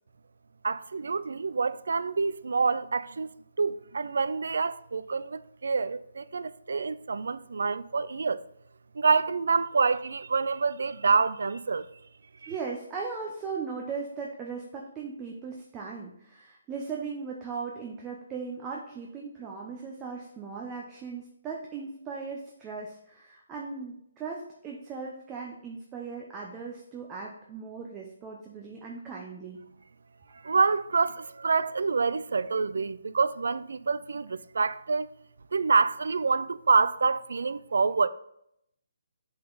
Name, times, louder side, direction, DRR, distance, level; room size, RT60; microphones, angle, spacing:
voice 1, 0.6-3.3 3.6-8.4 9.0-11.9 12.4-12.5 30.4-35.1 35.5-38.1, right 4 dB, 75° right, 0.3 m, -27 dB
voice 2, 12.5-29.6, right 5 dB, 15° right, 0.7 m, -38 dB
7.6 x 3.9 x 3.9 m
hypercardioid pair, 155°, 0 cm